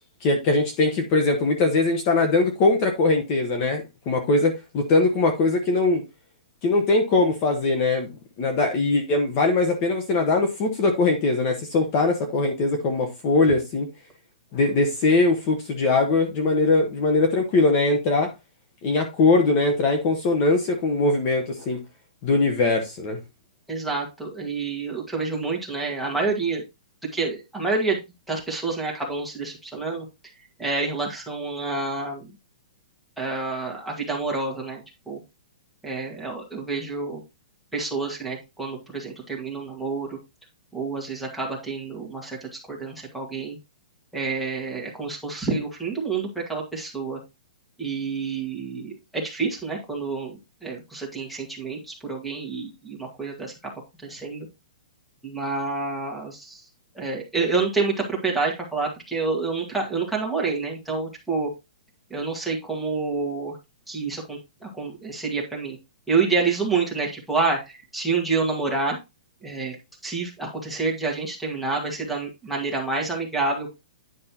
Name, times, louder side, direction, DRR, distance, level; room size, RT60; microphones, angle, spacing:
voice 1, 0.2-6.0 6.6-8.1 8.4-13.9 14.5-18.3 18.8-21.8 22.2-23.2, left 3 dB, 30° left, 1.1 m, -21 dB
voice 2, 23.7-26.6 27.1-28.0 28.3-30.1 30.6-32.3 33.2-35.2 35.8-37.2 37.7-40.2 40.7-43.6 44.1-47.2 47.8-53.5 54.0-54.5 55.2-56.7 57.0-61.5 62.1-63.6 63.9-65.8 66.1-69.0 69.4-69.8 70.0-73.7, right 4 dB, ahead, 1.7 m, -28 dB
9.9 x 5.4 x 2.9 m
hypercardioid pair, 165°, 4 cm